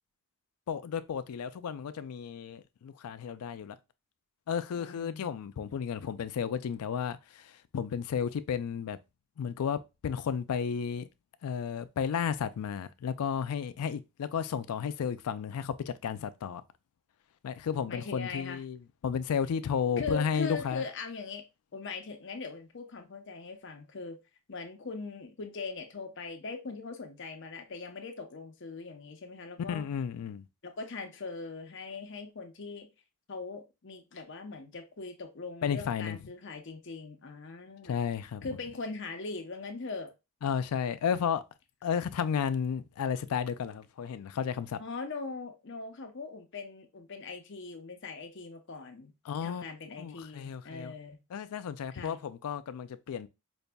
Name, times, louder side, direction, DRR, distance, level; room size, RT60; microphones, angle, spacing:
voice 1, 0.7-3.8 4.5-9.0 9.4-11.1 11.4-16.6 17.4-20.8 29.7-30.5 35.6-36.2 37.8-38.5 40.4-41.4 41.8-44.8 49.3-49.7 50.0-50.9 51.3-53.3, left 7 dB, 90° left, 0.4 m, -33 dB
voice 2, 4.8-5.3 17.9-18.6 20.0-21.4 21.7-24.2 24.5-29.8 30.6-32.9 33.3-38.0 38.4-40.1 44.8-49.1 49.4-51.2 51.9-52.2, left 4 dB, 55° left, 0.7 m, -40 dB
5.2 x 2.6 x 2.2 m
head